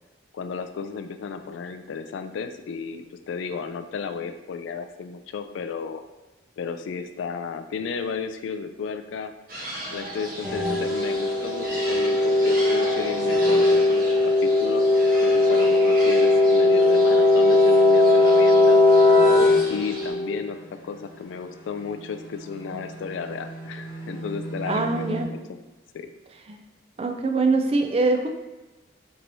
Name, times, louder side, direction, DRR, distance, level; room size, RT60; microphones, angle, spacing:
voice 1, 0.3-6.0 6.6-9.3 9.9-15.0 15.2-18.8 19.7-25.6 25.9-26.1, left 5 dB, 85° left, 8 dB, 0.3 m, -33 dB
sound 1, 9.5-20.1, right 1 dB, 50° right, 0.9 m, -36 dB
sound 2, 10.4-20.4 22.5-25.2, left 2 dB, 15° right, 0.9 m, -20 dB
voice 2, 24.7-25.3 26.5-26.6 27.0-28.3, right 3 dB, 30° right, 4 dB, 0.3 m, -23 dB
4.6 x 3.0 x 2.6 m, 1.1 s
head